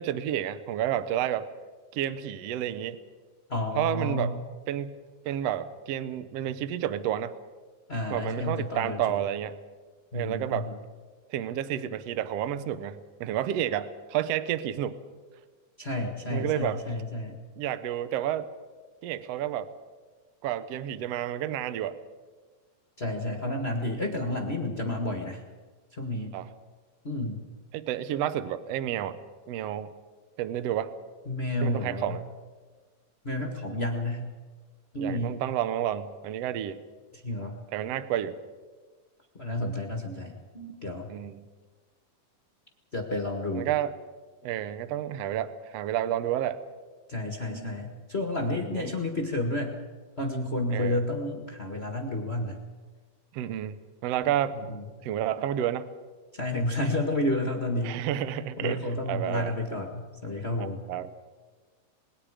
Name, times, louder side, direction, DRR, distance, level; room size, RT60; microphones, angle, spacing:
voice 1, 0.0-1.5 1.9-3.0 3.7-4.4 4.7-5.0 5.2-7.3 8.1-9.6 10.1-10.7 11.3-15.0 16.3-16.8 17.6-18.5 19.0-19.7 20.4-22.0 26.3-26.5 27.7-29.2 29.5-29.9 30.4-30.9 31.6-32.2 35.0-36.8 37.7-38.4 41.1-41.4 43.5-43.9 44.4-46.6 48.5-48.9 50.7-51.0 53.3-53.8 54.0-54.6 55.0-55.9 57.8-59.5 60.6-61.1, right 11 dB, 80° right, 13 dB, 1.4 m, -30 dB
voice 2, 3.5-4.4 7.9-9.2 10.1-10.8 15.8-17.4 23.0-25.4 25.9-26.4 27.0-27.4 31.3-32.2 33.2-34.3 34.9-35.4 37.1-37.6 39.4-41.1 42.9-43.7 47.1-49.8 50.2-52.6 54.7-54.8 56.3-58.0 58.3-60.8, left 1 dB, 50° left, 2 dB, 0.7 m, -31 dB
27.0 x 21.0 x 5.0 m, 1.4 s
omnidirectional pair, 4.2 m